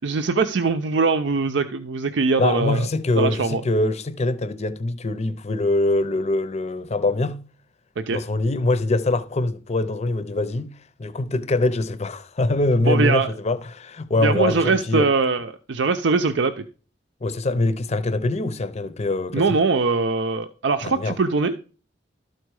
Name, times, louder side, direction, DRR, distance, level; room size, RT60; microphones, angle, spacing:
voice 1, 0.0-2.9 3.2-3.6 8.0-8.2 12.9-13.3 14.2-16.6 19.3-21.5, right 4 dB, 75° right, 0.6 m, -22 dB
voice 2, 2.4-7.4 8.1-15.1 17.2-19.6 20.8-21.2, left 2 dB, 35° left, 0.7 m, -23 dB
12.5 x 4.5 x 4.7 m
head